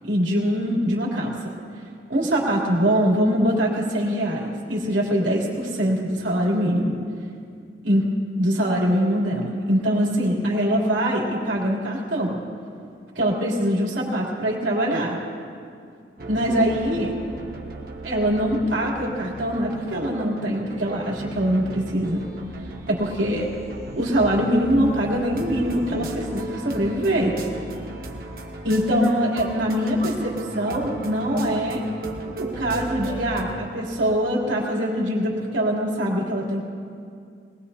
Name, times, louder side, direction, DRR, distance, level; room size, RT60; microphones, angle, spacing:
voice 1, 0.0-1.5 2.1-7.0 7.8-8.1 8.4-12.4 13.1-15.2 16.3-17.1 18.0-22.2 22.9-23.5 24.0-27.4 28.6-31.8 32.4-36.6, equal, 85° right, -3 dB, 3.2 m, -23 dB
sound 1, 16.2-33.4, right 2 dB, 50° right, 1.3 m, -36 dB
21.5 x 19.5 x 2.8 m, 2.4 s
head